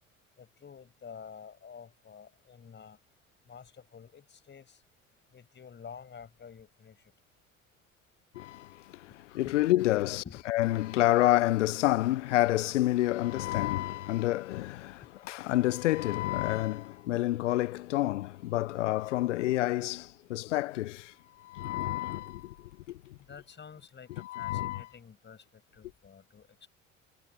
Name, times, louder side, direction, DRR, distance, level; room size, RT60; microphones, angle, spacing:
voice 1, 0.4-3.0 3.5-4.8 5.3-7.1 9.1-9.6 10.0-10.4 14.9-15.1 23.1-26.7, left 6 dB, 30° left, 5.5 m, -50 dB
voice 2, 8.3-15.0 15.3-23.2 24.2-24.9, left 16 dB, 70° left, 0.6 m, -29 dB
figure-of-eight pair, 60°, 38 cm